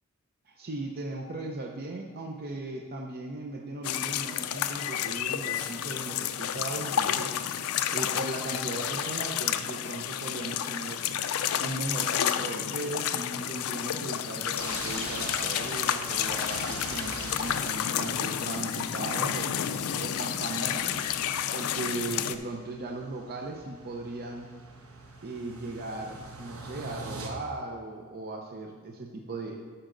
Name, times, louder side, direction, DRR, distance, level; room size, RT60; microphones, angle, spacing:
voice 1, 0.5-7.4 7.9-11.0 11.6-19.5 20.0-21.0 21.5-24.5 25.2-29.6, right 2 dB, 45° right, 1 dB, 0.6 m, -37 dB
sound 1, 3.8-22.4, left 9 dB, 65° left, 0.4 m, -30 dB
sound 2, 14.6-27.3, right 3 dB, 65° right, 1.1 m, -43 dB
11.0 x 6.4 x 3.8 m, 1.5 s
head